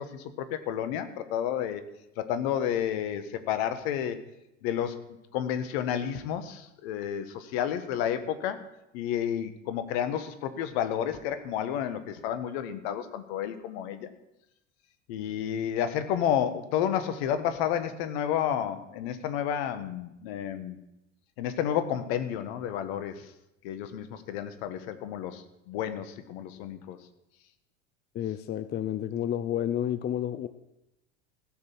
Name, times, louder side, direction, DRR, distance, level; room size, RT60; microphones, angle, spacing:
voice 1, 0.0-1.8 2.2-4.2 4.6-5.0 5.3-8.6 8.9-14.1 15.1-20.8 21.4-23.3 23.6-27.0, left 9 dB, 55° left, 10 dB, 1.5 m, -31 dB
voice 2, 28.1-30.5, left 10 dB, 25° left, 12 dB, 0.6 m, -30 dB
16.0 x 6.7 x 7.5 m, 0.89 s
figure-of-eight pair, 80°, 37 cm